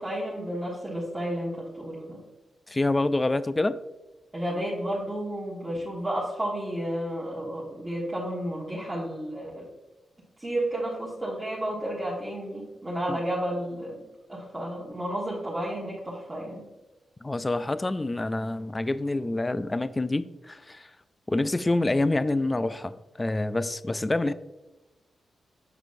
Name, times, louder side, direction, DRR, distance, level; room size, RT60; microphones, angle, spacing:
voice 1, 0.0-2.2 4.3-9.7 10.4-14.0 14.3-16.6, right 1 dB, 15° right, -7 dB, 1.6 m, -32 dB
voice 2, 2.7-3.8 13.1-13.2 17.2-20.9 21.3-24.3, left 2 dB, 25° left, 15 dB, 0.3 m, -27 dB
6.9 x 6.0 x 2.6 m, 1.1 s
cardioid pair, 70°, 0 cm